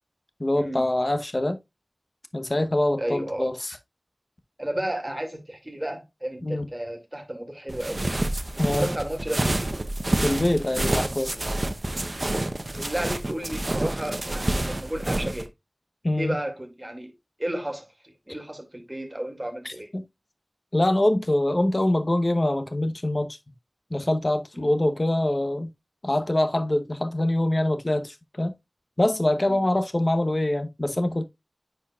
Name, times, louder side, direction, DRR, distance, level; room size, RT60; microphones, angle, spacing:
voice 1, 0.4-1.6 2.3-3.7 6.4-6.7 8.6-8.9 10.2-11.4 16.0-16.4 19.6-20.0 20.7-23.4 23.9-25.7 26.0-28.5 29.0-31.2, left 1 dB, 50° left, 0.9 m, -24 dB
voice 2, 3.0-3.5 4.6-8.0 8.6-9.6 12.8-15.5 16.2-17.1 17.4-19.9 24.5-24.7 29.5-29.6, right 1 dB, 25° right, 2.3 m, -32 dB
sound 1, 7.7-15.4, right 1 dB, 55° right, 0.8 m, -28 dB
9.7 x 4.5 x 2.3 m
wide cardioid pair, 50°, 0 cm